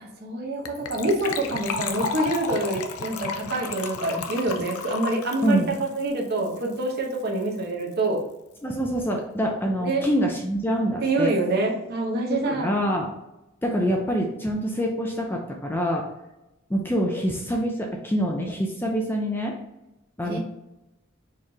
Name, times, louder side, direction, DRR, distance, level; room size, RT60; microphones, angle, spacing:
voice 1, 0.2-8.2 9.8-10.0 11.0-12.7 20.3-20.4, right 2 dB, 45° right, -1 dB, 0.9 m, -26 dB
Gurgling / Trickle dribble / Fill (with liquid), 0.7-6.9 7.1-7.2 7.4-7.6 7.9-8.0, left 5 dB, 80° left, 0.5 m, -33 dB
voice 2, 5.4-5.8 8.6-11.3 12.3-13.1 13.6-16.0 16.7-19.6 20.2-20.4, equal, 10° left, 0 dB, 0.4 m, -25 dB
4.5 x 3.1 x 3.5 m, 0.92 s
head